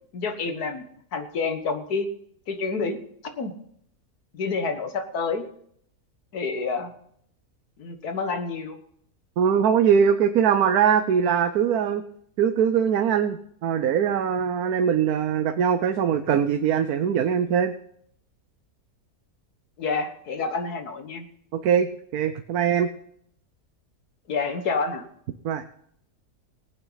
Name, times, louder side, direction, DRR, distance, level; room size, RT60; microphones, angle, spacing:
voice 1, 0.1-0.9 1.1-2.1 2.5-3.5 4.3-5.4 6.3-6.9 7.8-8.8 19.8-21.3 24.3-25.0, left 4 dB, 85° left, 7 dB, 1.9 m, -28 dB
voice 2, 9.4-12.1 12.4-17.7 21.5-22.9 25.4-25.6, right 8 dB, 75° right, 8 dB, 1.3 m, -22 dB
19.5 x 8.9 x 4.0 m, 0.67 s
omnidirectional pair, 1.6 m